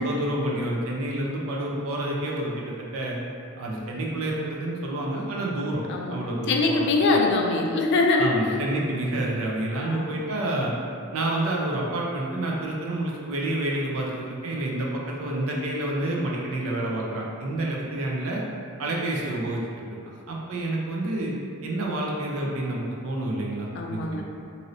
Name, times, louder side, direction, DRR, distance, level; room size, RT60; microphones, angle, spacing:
voice 1, 0.0-3.2 3.6-5.8 6.1-6.9 8.2-10.7 11.1-18.4 18.8-19.6 20.3-21.3 21.6-24.2, right 1 dB, 70° right, -3 dB, 0.5 m, -28 dB
voice 2, 6.5-8.6 9.8-10.1 23.7-24.2, left 3 dB, 55° left, 1 dB, 0.3 m, -23 dB
3.0 x 2.7 x 2.6 m, 2.4 s
head